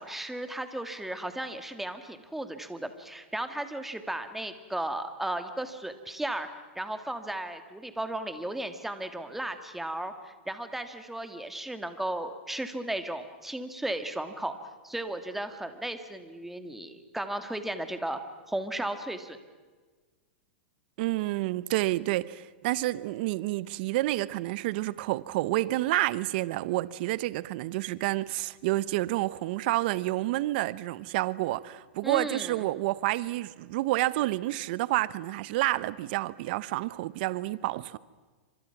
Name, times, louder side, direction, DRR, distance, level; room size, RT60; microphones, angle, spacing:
voice 1, 0.0-14.6 14.8-18.2 18.5-19.4 32.0-32.7, right 1 dB, 5° right, 2.2 m, -35 dB
voice 2, 21.0-38.0, right 18 dB, 55° right, 1.0 m, -29 dB
29.0 x 26.0 x 6.0 m
hypercardioid pair, 130°, 6 cm